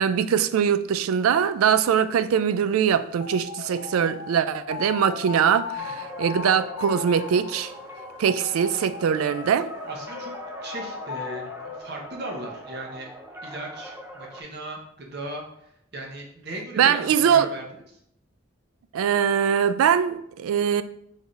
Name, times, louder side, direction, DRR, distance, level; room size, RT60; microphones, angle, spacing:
voice 1, 0.0-7.7 8.2-9.7 16.8-17.5 18.9-20.8, right 8 dB, 90° right, 0.3 m, -22 dB
sound 1, 3.2-11.8, left 7 dB, 85° left, 0.4 m, -37 dB
sound 2, 5.8-14.4, right 1 dB, 10° right, 0.4 m, -41 dB
voice 2, 9.8-10.3 10.6-13.1 13.4-18.0, right 1 dB, 50° right, 0.9 m, -37 dB
3.8 x 3.5 x 4.0 m
head